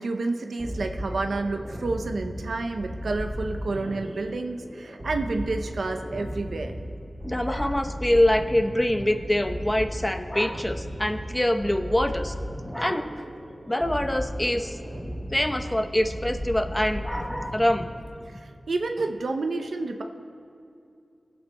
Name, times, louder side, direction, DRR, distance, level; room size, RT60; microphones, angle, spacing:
voice 1, 0.0-6.8 18.2-20.0, right 3 dB, 85° right, 5 dB, 0.6 m, -29 dB
sound 1, 0.6-18.2, equal, 35° right, 2.3 m, -36 dB
voice 2, 7.2-12.3 12.7-13.2 13.7-14.8 15.3-17.9, left 1 dB, 20° left, 6 dB, 0.8 m, -25 dB
25.5 x 8.7 x 2.2 m, 2.6 s
cardioid pair, 40°, 0 cm